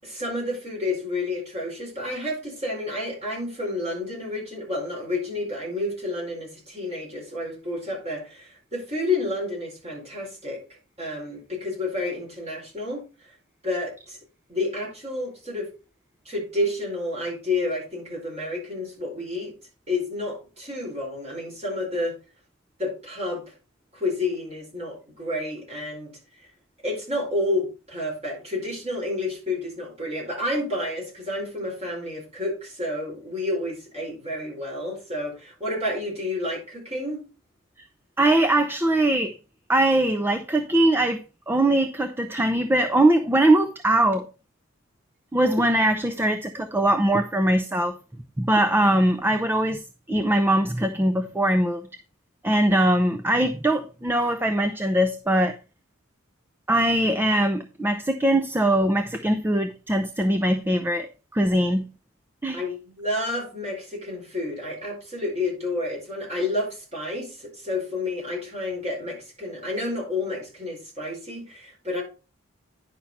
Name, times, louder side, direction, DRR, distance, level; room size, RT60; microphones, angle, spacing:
voice 1, 0.0-10.6 11.0-13.3 13.6-14.2 14.5-15.7 16.2-19.5 19.9-22.2 22.8-23.5 23.9-26.1 26.8-37.2 62.5-72.0, left 2 dB, 30° right, 4.6 m, -30 dB
voice 2, 38.2-39.3 39.7-41.2 41.5-44.3 45.3-48.0 48.4-51.9 52.4-55.5 56.7-61.1 61.3-61.9 62.4-62.6, right 1 dB, 10° right, 0.5 m, -21 dB
9.9 x 5.8 x 4.1 m
head